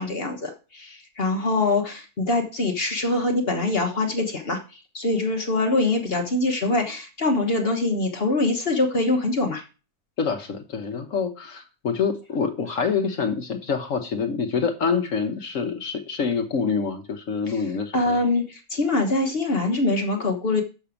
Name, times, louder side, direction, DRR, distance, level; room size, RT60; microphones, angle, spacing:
voice 1, 0.0-9.6 17.9-20.6, left 2 dB, 40° left, 3 dB, 1.3 m, -24 dB
voice 2, 10.2-18.2, left 5 dB, 55° left, 7 dB, 1.2 m, -26 dB
6.5 x 6.0 x 6.9 m, 0.33 s
omnidirectional pair, 1.7 m